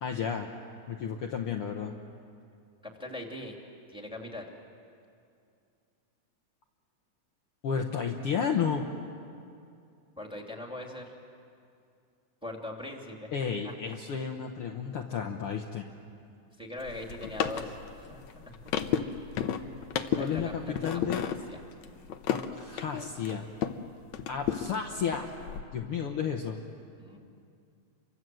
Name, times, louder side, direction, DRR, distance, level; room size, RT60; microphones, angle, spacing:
voice 1, 0.0-0.5 0.9-1.9 7.6-8.8 13.3-15.9 20.1-21.2 22.3-23.4 24.3-25.3 25.7-26.6, left 7 dB, 60° left, 3 dB, 1.8 m, -32 dB
voice 2, 2.8-3.6 3.9-4.5 10.2-11.1 12.4-13.7 16.6-18.2 20.1-21.6 27.0-27.2, left 1 dB, ahead, 1 dB, 2.7 m, -41 dB
sound 1, 16.8-23.8 24.1-25.6, left 9 dB, 75° left, 2.3 m, -33 dB
29.5 x 24.5 x 7.8 m, 2.5 s
omnidirectional pair, 3.3 m